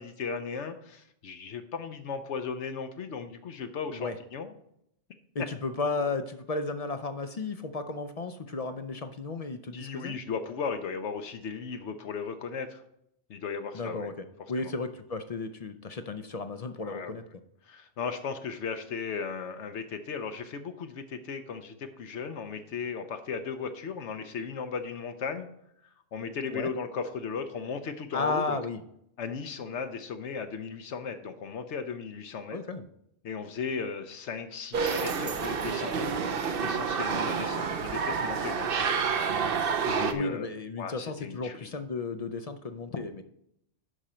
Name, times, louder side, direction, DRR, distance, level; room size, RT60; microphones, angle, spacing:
voice 1, 0.0-4.5 9.7-12.8 13.3-14.1 14.6-14.7 16.8-17.1 17.6-25.5 26.1-28.6 29.2-32.6 33.2-35.9 36.6-38.9 39.8-40.5 40.8-41.7, left 5 dB, 75° left, 8 dB, 1.0 m, -36 dB
voice 2, 5.3-10.2 13.7-14.1 14.5-17.2 26.5-26.7 28.1-28.8 32.5-32.9 38.8-38.9 40.1-43.2, left 3 dB, 50° left, 9 dB, 0.4 m, -34 dB
sound 1, 34.7-40.1, right 6 dB, 55° right, 0.9 m, -29 dB
11.5 x 5.0 x 4.3 m, 0.76 s
omnidirectional pair, 1.2 m